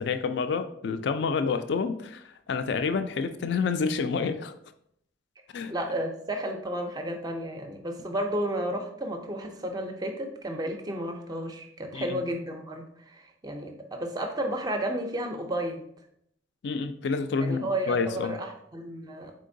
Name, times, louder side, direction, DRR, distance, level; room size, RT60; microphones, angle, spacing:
voice 1, 0.0-4.5 5.5-5.7 11.9-12.2 16.6-18.4, left 5 dB, 55° left, 10 dB, 0.3 m, -28 dB
voice 2, 5.7-15.8 17.4-19.3, right 1 dB, 20° right, 4 dB, 0.4 m, -32 dB
4.2 x 3.7 x 2.6 m, 0.72 s
head